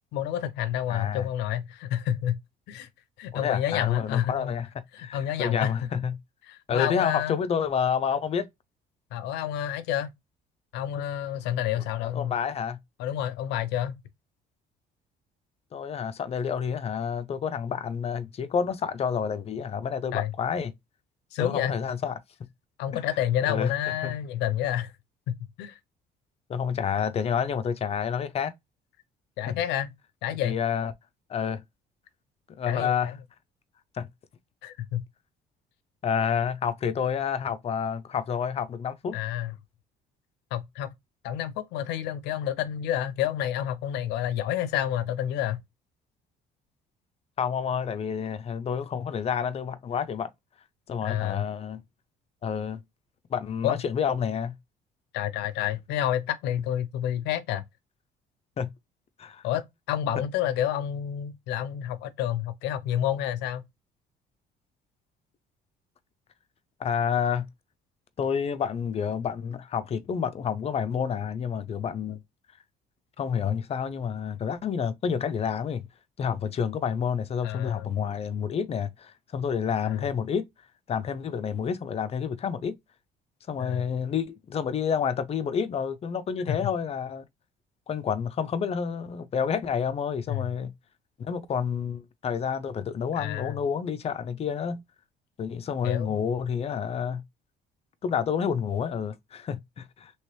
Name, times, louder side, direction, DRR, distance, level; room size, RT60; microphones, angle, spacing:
voice 1, 0.1-2.4 2.7-2.9 3.2-4.5 4.9-5.7 6.4-7.4 9.1-10.1 10.7-12.3 13.0-14.0 20.1-20.3 21.3-21.7 22.8-24.9 25.3-25.8 29.4-29.9 30.2-30.6 32.6-33.1 34.6-35.0 39.1-39.5 40.5-40.9 41.2-45.6 51.0-51.5 53.6-53.8 55.1-57.6 59.4-63.6 77.4-77.9 79.8-80.1 83.6-83.8 86.5-86.6 90.3-90.4 93.2-93.6 95.8-96.2, left 11 dB, 90° left, 0.6 m, -29 dB
voice 2, 0.9-1.3 3.3-4.7 5.0-6.2 6.7-8.5 11.8-12.8 15.7-20.7 21.4-22.2 22.9-23.0 23.4-23.7 24.0-24.1 26.5-28.5 29.5-29.6 30.4-30.9 31.3-31.6 32.6-33.2 33.9-34.1 36.0-39.2 47.4-50.3 50.9-51.8 52.4-52.8 53.3-54.5 58.6-58.7 59.2-59.4 60.2-60.3 66.8-67.4 68.2-72.2 73.2-75.9 76.2-80.5 80.9-82.8 83.5-87.3 87.9-90.7 91.2-94.8 95.4-97.2 98.0-100.1, left 7 dB, 35° left, 0.5 m, -29 dB
3.0 x 3.0 x 3.1 m
cardioid pair, 110°, 17 cm